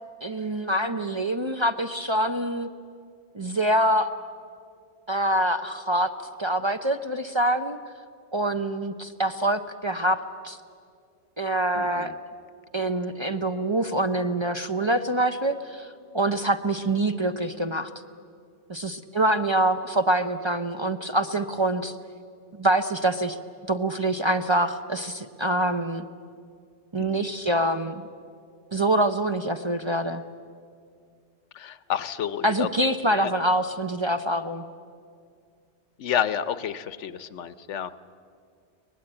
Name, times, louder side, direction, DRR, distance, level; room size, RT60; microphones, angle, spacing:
voice 1, 0.2-2.7 3.3-4.1 5.1-6.1 6.4-7.8 8.3-10.6 11.4-12.1 12.7-17.9 18.7-22.0 22.6-23.4 23.7-26.1 26.9-28.1 28.7-30.2 32.4-34.6, right 1 dB, 30° right, 7 dB, 0.6 m, -25 dB
voice 2, 11.7-12.2 27.0-27.3 31.5-32.7 33.1-33.3 36.0-37.9, left 9 dB, 85° left, 15 dB, 1.1 m, -30 dB
23.5 x 19.0 x 8.8 m, 2.3 s
omnidirectional pair, 1.2 m